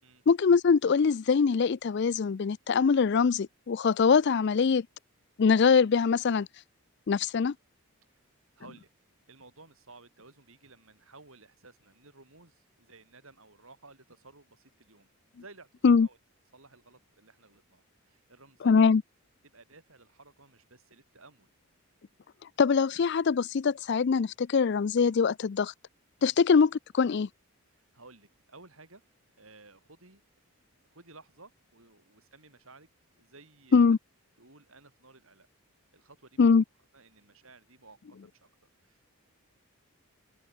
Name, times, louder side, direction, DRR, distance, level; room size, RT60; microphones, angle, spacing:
voice 1, 0.3-4.9 5.4-6.5 7.1-7.5 15.8-16.1 18.6-19.0 22.6-25.7 26.2-27.3 33.7-34.0 36.4-36.6, left 5 dB, 50° left, 0.4 m, -23 dB
voice 2, 8.6-8.9 9.3-15.1 15.4-16.2 16.5-18.8 19.5-21.5 26.2-26.4 27.7-29.0 29.4-30.2 30.9-32.9 33.2-34.0 34.4-35.5 35.9-36.5 36.9-38.5 38.8-39.1, right 3 dB, 65° right, 5.7 m, -55 dB
head